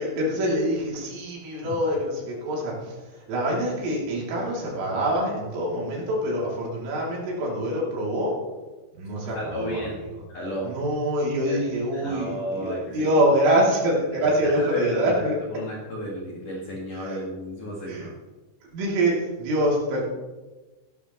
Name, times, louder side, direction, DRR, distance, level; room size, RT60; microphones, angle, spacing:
voice 1, 0.0-8.3 8.9-9.8 10.6-15.4 17.0-17.2 17.9-18.1 18.7-20.0, right 1 dB, 80° right, -4 dB, 5.7 m, -25 dB
voice 2, 9.2-10.0 10.3-10.8 11.5-13.2 14.2-15.2 15.5-18.1, right 1 dB, 50° left, -4 dB, 2.9 m, -33 dB
17.0 x 11.5 x 3.2 m, 1.2 s
omnidirectional pair, 5.6 m